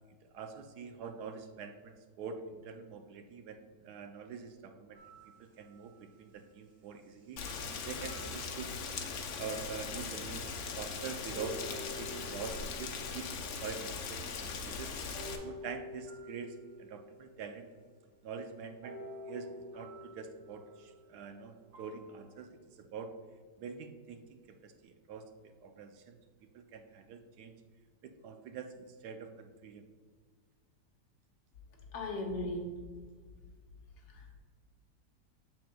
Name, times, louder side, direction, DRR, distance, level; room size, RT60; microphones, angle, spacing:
voice 1, 0.2-5.0 5.4-7.4 7.8-8.7 9.3-10.5 10.8-13.3 13.6-14.9 15.4-17.7 18.2-23.1 23.6-25.3 25.6-26.2 26.5-27.5 28.0-29.9, right 6 dB, 75° right, 6 dB, 1.0 m, -45 dB
sound 1, 4.9-6.1 7.4-9.2 9.8-9.9 11.3-14.2 15.1-17.8 18.8-22.3, left 1 dB, 50° right, 1.9 m, -50 dB
Rain, 7.4-15.4, left 5 dB, 65° left, 1.1 m, -40 dB
voice 2, 31.9-32.6 34.1-34.4, left 2 dB, 85° left, 2 dB, 1.7 m, -37 dB
7.4 x 7.3 x 2.3 m, 1.5 s
omnidirectional pair, 1.9 m